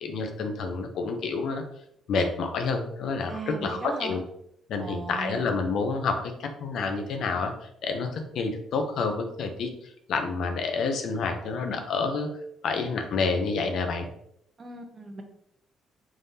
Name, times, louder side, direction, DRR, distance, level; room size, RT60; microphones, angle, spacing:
voice 1, 0.0-1.6 2.1-4.2 4.7-7.5 7.8-9.7 10.1-12.3 12.6-14.1, left 4 dB, 70° left, 5 dB, 0.6 m, -28 dB
voice 2, 3.3-4.2 4.8-5.6 14.6-15.2, right 3 dB, 35° right, 4 dB, 0.7 m, -37 dB
3.6 x 3.3 x 2.7 m, 0.74 s
cardioid pair, 90°, 0 cm